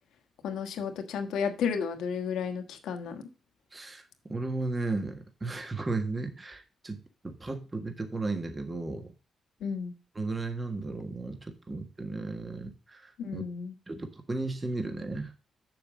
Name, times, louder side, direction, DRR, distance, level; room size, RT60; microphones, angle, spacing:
voice 1, 0.4-3.2 9.6-9.9 13.2-13.7, left 6 dB, 80° left, 7 dB, 1.3 m, -32 dB
voice 2, 3.7-4.0 4.3-7.0 7.2-9.1 10.1-13.4 13.9-15.3, right 3 dB, 30° right, 6 dB, 1.6 m, -34 dB
6.9 x 6.7 x 4.9 m, 0.32 s
supercardioid pair, 60°, 0 cm